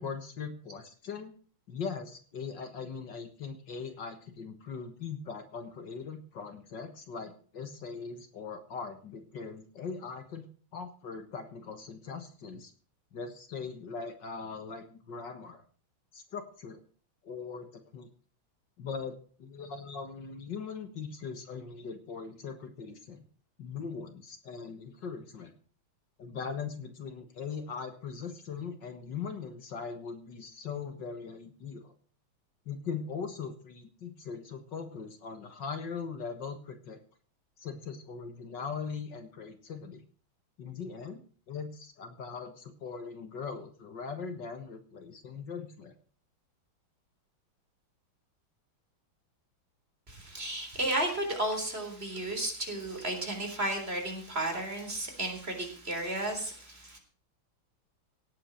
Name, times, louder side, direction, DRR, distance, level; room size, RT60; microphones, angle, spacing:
voice 1, 0.0-1.3 1.7-10.4 10.7-12.7 13.1-15.6 16.1-16.8 17.2-18.1 18.8-23.2 23.6-25.5 26.2-31.9 32.7-37.0 37.6-40.0 40.6-45.9, left 5 dB, 60° left, 8 dB, 2.1 m, -40 dB
voice 2, 50.1-57.0, right 1 dB, 30° right, 4 dB, 4.1 m, -33 dB
17.5 x 8.6 x 6.4 m, 0.42 s
omnidirectional pair, 2.2 m